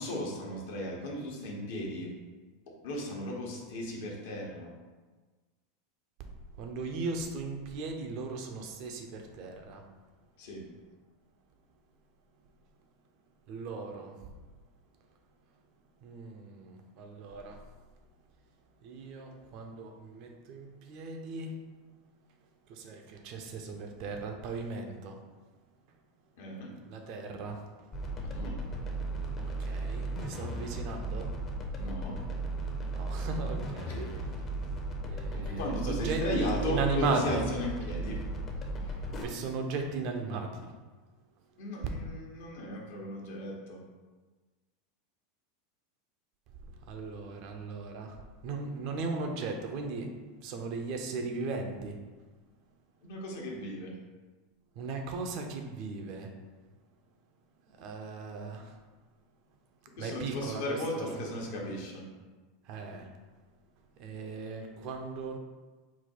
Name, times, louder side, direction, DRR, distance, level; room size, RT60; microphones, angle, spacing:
voice 1, 0.0-2.1 2.8-4.7 10.4-10.6 26.4-26.7 28.2-28.6 31.8-32.2 35.3-38.2 38.8-38.9 41.6-43.8 53.0-53.9 60.0-62.0, left 1 dB, 70° left, -2 dB, 1.0 m, -36 dB
voice 2, 6.6-9.8 13.5-14.3 16.0-17.6 18.8-21.6 22.7-25.2 26.9-27.6 29.4-31.3 31.9-32.5 32.9-34.4 35.0-37.5 39.2-40.7 46.6-50.1 50.4-52.0 54.8-56.3 57.7-58.8 60.0-61.1 62.6-63.1 64.0-65.4, right 4 dB, 55° right, 4 dB, 0.6 m, -37 dB
sound 1, 27.9-39.2, right 2 dB, 35° left, 0.7 m, -35 dB
4.0 x 2.3 x 4.3 m, 1.3 s
hypercardioid pair, 95°, 0 cm